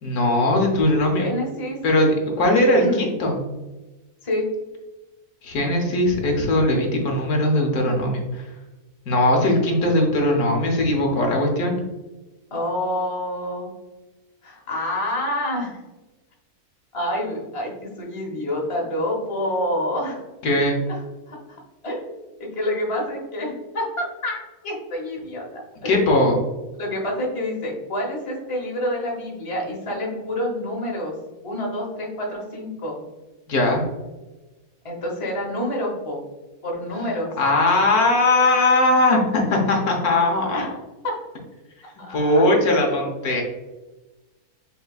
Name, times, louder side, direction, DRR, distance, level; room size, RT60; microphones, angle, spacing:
voice 1, 0.0-1.3 1.8-3.3 5.4-8.4 9.1-11.8 20.4-20.8 25.8-26.4 33.5-33.8 37.4-40.6 42.1-43.4, left 1 dB, 75° left, 1 dB, 1.4 m, -19 dB
voice 2, 1.1-1.8 2.8-3.0 4.2-4.5 12.5-13.7 14.4-15.8 16.9-20.2 20.9-21.0 21.3-24.4 24.6-25.4 25.8-26.0 26.8-31.1 31.4-33.0 34.8-36.2 36.6-37.3 40.5-40.7 41.0-41.1 42.0-43.1, left 1 dB, 25° left, -2 dB, 1.0 m, -28 dB
5.5 x 3.4 x 2.4 m, 1.1 s
omnidirectional pair, 1.6 m